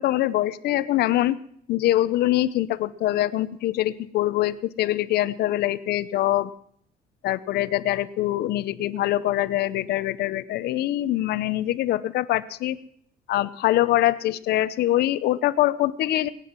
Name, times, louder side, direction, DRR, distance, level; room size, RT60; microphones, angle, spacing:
voice 1, 0.0-1.4 1.7-6.5 7.2-12.8 13.3-16.3, left 14 dB, 70° left, 15 dB, 0.7 m, -24 dB
19.5 x 9.3 x 6.0 m, 0.66 s
cardioid pair, 110°, 17 cm